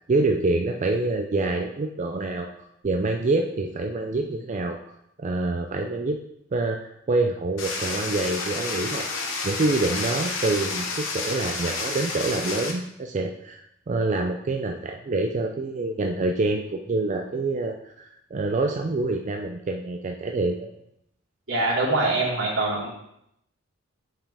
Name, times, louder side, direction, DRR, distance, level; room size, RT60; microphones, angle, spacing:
voice 1, 0.1-2.5 2.8-6.2 6.5-9.1 9.4-20.7, right 2 dB, 35° right, 3 dB, 0.4 m, -26 dB
sound 1, 7.6-12.7, left 3 dB, 75° left, 1.1 m, -30 dB
voice 2, 21.5-22.9, right 2 dB, 75° right, -6 dB, 2.6 m, -23 dB
7.5 x 5.3 x 3.4 m, 0.77 s
head